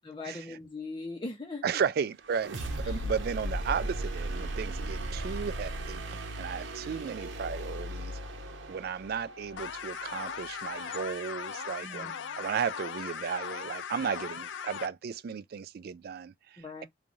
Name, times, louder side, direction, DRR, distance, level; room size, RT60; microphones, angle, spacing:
voice 1, 0.1-1.8 2.8-3.0 11.8-12.4 16.6-16.9, left 3 dB, 25° left, 0.7 m, -40 dB
voice 2, 1.6-2.6 2.9-8.2 8.7-16.8, right 6 dB, 55° right, 0.3 m, -34 dB
sound 1, 2.2-12.0, right 1 dB, 90° right, 0.8 m, -37 dB
Stereo Wow Alarm Loop, 9.6-14.9, left 7 dB, 80° left, 0.4 m, -39 dB
3.1 x 2.3 x 2.6 m
head